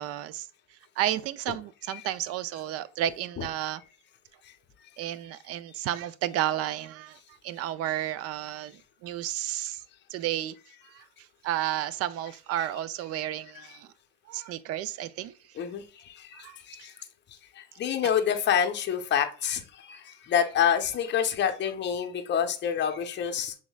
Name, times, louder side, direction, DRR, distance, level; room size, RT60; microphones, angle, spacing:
voice 1, 0.0-3.8 5.0-9.8 10.1-10.6 10.9-13.9 14.3-15.6 16.3-16.6, right 12 dB, 45° right, 0.4 m, -32 dB
voice 2, 15.6-17.1 17.5-23.5, left 8 dB, 30° left, 0.8 m, -28 dB
6.1 x 3.6 x 2.3 m
supercardioid pair, 120°, 34 cm